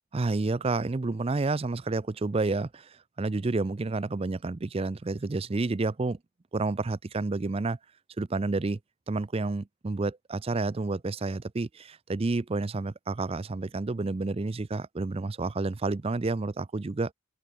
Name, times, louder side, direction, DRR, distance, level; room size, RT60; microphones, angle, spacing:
voice 1, 0.1-6.2 6.5-7.8 8.2-8.8 9.1-17.1, right 3 dB, 25° right, 0.4 m, -30 dB
open air
head